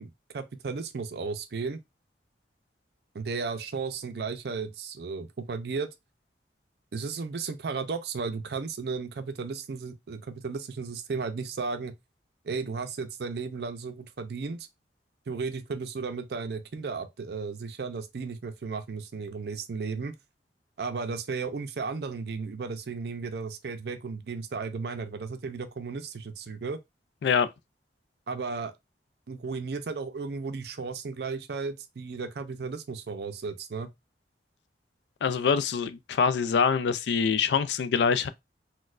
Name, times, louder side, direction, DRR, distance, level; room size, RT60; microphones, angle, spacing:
voice 1, 0.0-1.8 3.1-5.9 6.9-11.9 12.4-14.7 15.3-20.1 20.8-26.8 28.3-28.7 29.3-33.9, right 4 dB, 65° right, 0.5 m, -34 dB
voice 2, 35.2-38.3, left 6 dB, 75° left, 0.3 m, -25 dB
4.2 x 2.2 x 2.4 m
head